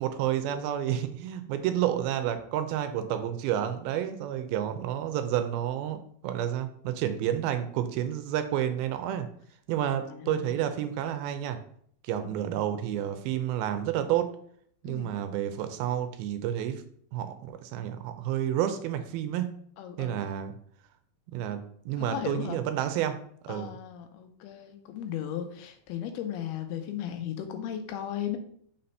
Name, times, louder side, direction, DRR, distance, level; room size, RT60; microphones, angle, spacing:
voice 1, 0.0-9.3 9.7-11.6 12.0-14.4 14.8-16.8 17.1-19.5 20.0-20.6 21.3-23.8, right 11 dB, 80° right, 9 dB, 2.4 m, -30 dB
voice 2, 10.0-10.6 12.1-12.3 14.8-15.1 19.8-20.3 22.0-22.6 23.5-28.4, left 10 dB, 90° left, 7 dB, 2.8 m, -36 dB
5.9 x 4.2 x 5.4 m, 0.62 s
omnidirectional pair, 4.4 m